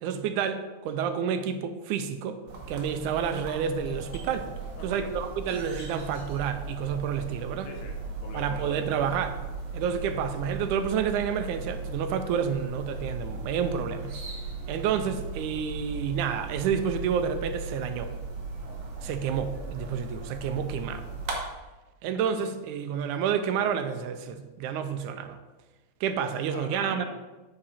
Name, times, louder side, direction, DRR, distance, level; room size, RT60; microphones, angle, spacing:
voice 1, 0.0-2.4 2.7-4.5 4.8-7.7 8.3-9.4 9.7-14.2 14.7-18.1 19.0-21.0 22.0-25.4 26.0-27.0, right 7 dB, 85° right, 9 dB, 2.1 m, -29 dB
sound 1, 2.5-21.4, right 3 dB, 65° right, 2.4 m, -37 dB
Doorbell, 3.8-13.2 13.4-13.5 14.2-14.5 14.8-16.2, left 1 dB, 45° left, 2.0 m, -55 dB
voice 2, 4.8-5.3 7.6-8.9 26.5-27.0, left 3 dB, 70° left, 2 dB, 1.7 m, -44 dB
7.7 x 5.8 x 4.2 m, 1.2 s
omnidirectional pair, 3.5 m